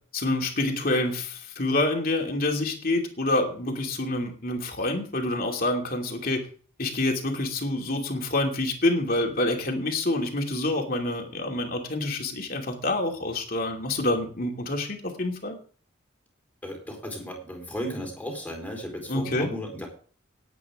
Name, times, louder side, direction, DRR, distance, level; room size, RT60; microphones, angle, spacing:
voice 1, 0.1-6.4 6.8-15.6 19.1-19.5, left 2 dB, 45° left, 2 dB, 2.8 m, -27 dB
voice 2, 16.6-19.9, equal, 10° left, 1 dB, 4.2 m, -35 dB
18.5 x 9.0 x 3.7 m, 0.43 s
head